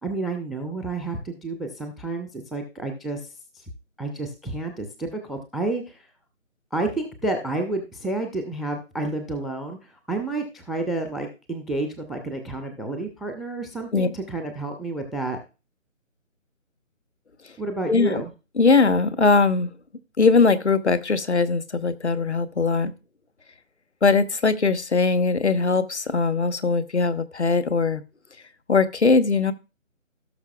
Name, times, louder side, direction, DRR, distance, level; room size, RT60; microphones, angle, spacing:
voice 1, 0.0-3.3 3.5-3.6 4.0-6.1 6.7-15.4 17.6-18.3, right 2 dB, ahead, 0.4 m, -30 dB
voice 2, 17.9-18.2 18.6-19.7 20.2-22.9 24.0-28.0 28.7-29.5, left 4 dB, 55° left, 1.1 m, -20 dB
17.0 x 6.1 x 2.3 m
figure-of-eight pair, 160°, 40 cm